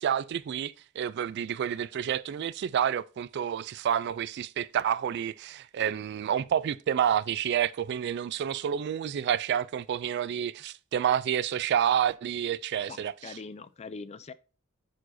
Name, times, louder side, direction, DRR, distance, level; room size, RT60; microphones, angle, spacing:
voice 1, 0.0-13.3, right 9 dB, 55° right, 0.3 m, -29 dB
voice 2, 12.9-14.3, left 4 dB, 30° left, 0.4 m, -42 dB
10.0 x 4.8 x 2.6 m
head